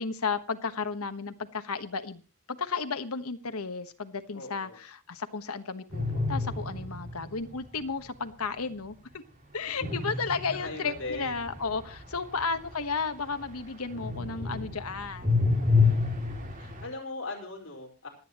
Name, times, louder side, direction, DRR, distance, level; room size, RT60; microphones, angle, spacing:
voice 1, 0.0-2.2 2.5-9.2 9.5-15.4, left 5 dB, 85° left, 9 dB, 1.2 m, -33 dB
voice 2, 4.3-4.8 9.8-10.2 10.6-11.4 12.5-12.6 16.3-18.1, left 3 dB, 60° left, 0 dB, 4.8 m, -40 dB
sound 1, 5.9-7.6 9.8-13.6 13.9-16.9, left 4 dB, 35° right, 2.4 m, -29 dB
27.0 x 9.2 x 3.0 m, 0.34 s
head